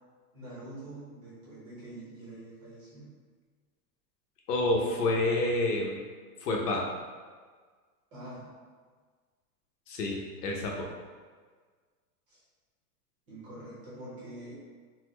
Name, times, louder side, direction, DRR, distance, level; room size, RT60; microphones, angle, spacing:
voice 1, 0.3-3.1 8.1-8.5 12.3-12.4 13.3-14.5, right 1 dB, 20° right, -8 dB, 0.6 m, -45 dB
voice 2, 4.5-6.0 6.4-6.8 9.9-10.9, left 2 dB, 85° left, -1 dB, 0.9 m, -28 dB
4.1 x 2.0 x 2.9 m, 1.5 s
supercardioid pair, 170°, 46 cm